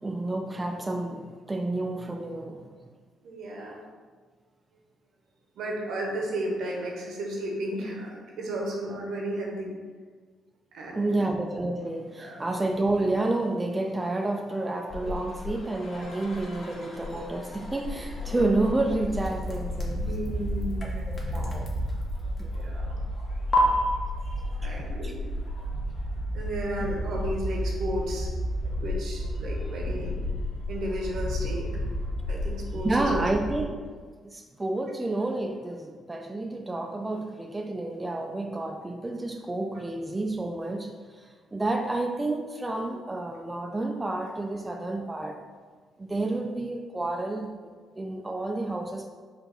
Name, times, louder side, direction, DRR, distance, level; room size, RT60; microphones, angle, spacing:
voice 1, 0.0-2.7 10.9-20.0 20.8-21.7 22.4-22.5 24.6-25.1 28.6-28.8 32.8-33.9 34.2-45.4 46.0-49.1, right 2 dB, 20° right, 3 dB, 0.3 m, -30 dB
voice 2, 3.2-3.8 5.5-9.7 10.7-11.2 12.2-12.6 19.9-21.2 22.5-23.0 23.5-23.9 24.2-25.2 26.3-28.3 28.8-30.1 30.7-31.7 32.3-33.2, right 1 dB, 75° right, 0 dB, 1.0 m, -34 dB
sound 1, 14.9-33.6, left 1 dB, 60° left, 1.1 m, -32 dB
sound 2, 19.1-22.9 23.5-23.6, left 3 dB, 35° left, 0.9 m, -34 dB
4.7 x 2.5 x 4.0 m, 1.5 s
cardioid pair, 90°, 0 cm